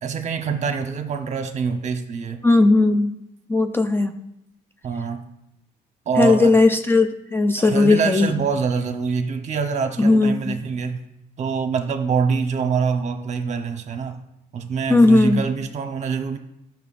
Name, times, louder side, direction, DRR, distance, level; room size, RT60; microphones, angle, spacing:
voice 1, 0.0-2.4 4.8-5.2 6.1-6.6 7.6-11.0 11.4-14.2 14.5-16.4, right 5 dB, 45° right, 6 dB, 0.9 m, -25 dB
voice 2, 2.4-3.1 3.5-4.1 6.2-8.3 10.0-10.6 14.9-15.4, left 2 dB, 15° left, 6 dB, 0.4 m, -17 dB
12.0 x 5.7 x 2.5 m, 0.83 s
cardioid pair, 110°, 17 cm